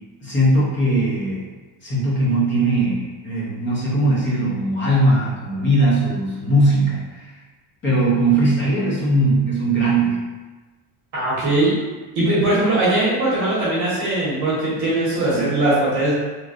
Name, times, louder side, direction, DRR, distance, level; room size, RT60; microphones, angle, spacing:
voice 1, 0.2-1.4 1.8-7.3 7.8-10.2 15.3-15.5, right 1 dB, 25° left, -7 dB, 0.7 m, -19 dB
voice 2, 11.1-11.7 12.1-16.1, right 2 dB, 35° right, -9 dB, 1.0 m, -20 dB
3.2 x 2.4 x 2.4 m, 1.2 s
cardioid pair, 165°, 48 cm